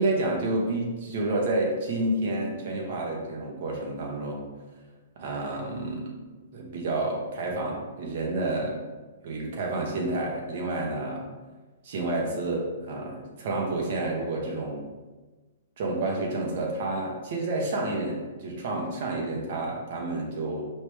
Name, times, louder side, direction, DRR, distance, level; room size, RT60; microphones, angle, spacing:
voice 1, 0.0-4.5 5.2-6.2 6.5-8.8 9.2-11.2 11.8-14.8 15.8-20.7, right 2 dB, 40° right, -1 dB, 1.0 m, -29 dB
4.8 x 3.2 x 3.3 m, 1.2 s
hypercardioid pair, 175°, 0 cm